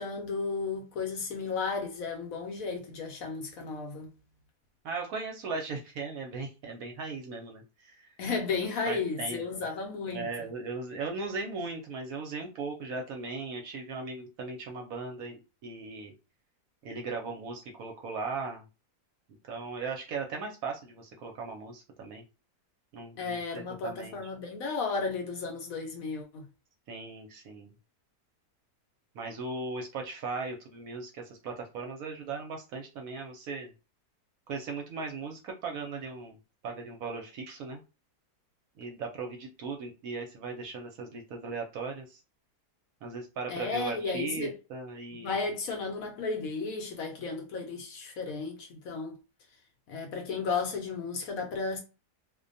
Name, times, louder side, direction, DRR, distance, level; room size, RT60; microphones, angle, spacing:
voice 1, 0.0-4.1 8.2-10.3 23.2-26.5 43.5-44.5 45.2-49.2 49.9-51.8, left 4 dB, 70° left, 0.9 m, -34 dB
voice 2, 4.8-8.1 8.9-9.7 10.1-16.1 16.8-18.6 19.5-22.2 22.9-24.2 26.9-27.7 29.1-33.7 34.5-36.4 36.6-37.8 38.8-42.2 43.0-45.3, right 4 dB, 70° right, 0.9 m, -38 dB
2.6 x 2.1 x 2.5 m
omnidirectional pair, 1.7 m